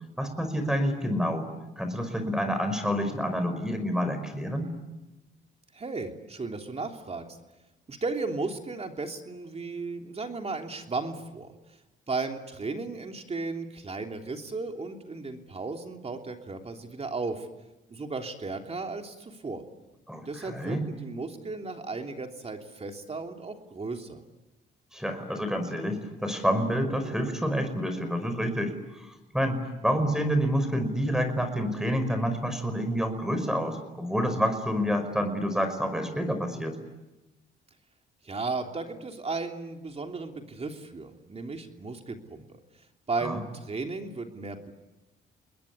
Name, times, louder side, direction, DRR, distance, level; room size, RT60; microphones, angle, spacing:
voice 1, 0.2-1.5 1.8-4.7 20.1-20.9 24.9-28.7 29.3-36.8 43.2-43.4, equal, 5° right, 8 dB, 5.3 m, -28 dB
voice 2, 5.7-7.2 7.9-11.5 12.1-17.5 17.9-19.6 20.2-24.2 38.2-42.6 43.1-44.7, right 3 dB, 30° right, 4 dB, 3.2 m, -35 dB
29.0 x 21.0 x 9.8 m, 1.1 s
cardioid pair, 90°, 20 cm